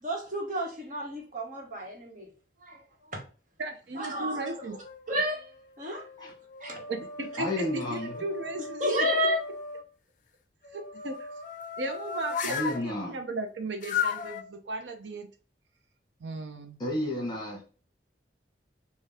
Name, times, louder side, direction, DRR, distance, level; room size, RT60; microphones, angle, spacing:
voice 1, 0.0-2.3 2.6-3.2 3.9-4.8 5.1-5.5 5.8-6.0 6.6-6.8 8.8-9.4, equal, 45° right, 1.3 m, -31 dB
voice 2, 3.6-4.8 6.9-9.1 10.7-11.3 11.8-15.3 16.2-16.8, right 2 dB, 90° right, 0.7 m, -36 dB
sound 1, 4.4-5.3 5.9-9.8 10.6-12.9 13.8-14.4, left 6 dB, 50° left, 0.4 m, -36 dB
voice 3, 7.4-8.2 12.4-13.2 16.8-17.6, left 1 dB, 25° left, 1.3 m, -31 dB
4.3 x 2.4 x 3.4 m
head